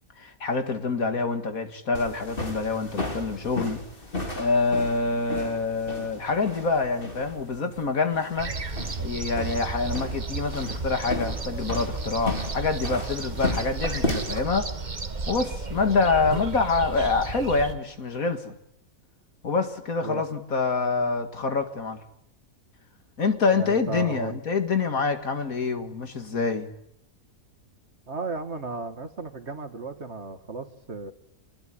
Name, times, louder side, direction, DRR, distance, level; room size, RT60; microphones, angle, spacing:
voice 1, 0.2-3.8 4.3-8.5 9.0-14.7 15.3-18.5 19.4-22.0 23.2-26.7, left 4 dB, 70° left, 2.5 m, -26 dB
sound 1, 1.9-14.4, left 2 dB, 35° left, 3.4 m, -35 dB
sound 2, 8.4-17.7, right 3 dB, 30° right, 1.4 m, -33 dB
voice 2, 23.5-24.4 28.1-31.1, right 4 dB, 50° right, 2.0 m, -34 dB
26.0 x 20.5 x 10.0 m
omnidirectional pair, 1.5 m